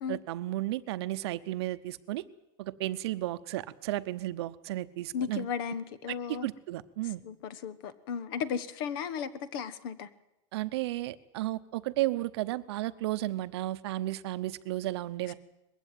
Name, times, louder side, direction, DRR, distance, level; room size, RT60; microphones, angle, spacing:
voice 1, 0.1-2.2 2.6-5.5 6.1-7.2 10.5-15.3, right 16 dB, 60° right, 13 dB, 0.9 m, -33 dB
voice 2, 5.1-6.5 7.2-10.1, left 7 dB, 45° left, 15 dB, 1.2 m, -35 dB
21.0 x 15.5 x 9.3 m, 0.95 s
supercardioid pair, 175°, 16 cm